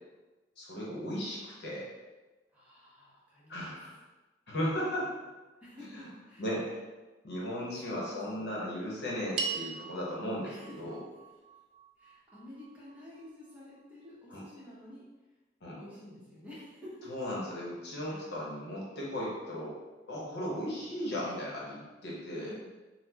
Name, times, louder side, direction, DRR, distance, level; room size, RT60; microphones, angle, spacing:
voice 1, 0.6-1.9 3.5-3.9 4.5-5.1 5.9-6.1 6.4-6.8 7.2-11.0 14.3-14.4 15.6-15.8 17.1-19.8 20.1-22.5, equal, 60° left, -5 dB, 0.9 m, -36 dB
voice 2, 2.5-3.7 4.9-5.1 5.6-6.4 7.8-8.6 10.4-10.8 12.0-15.0 15.8-17.1 18.1-18.2 22.4-22.6, left 1 dB, 10° right, -8 dB, 0.8 m, -50 dB
sound 1, 9.4-13.8, right 5 dB, 60° right, 0.4 m, -41 dB
4.1 x 2.0 x 2.8 m, 1.2 s
head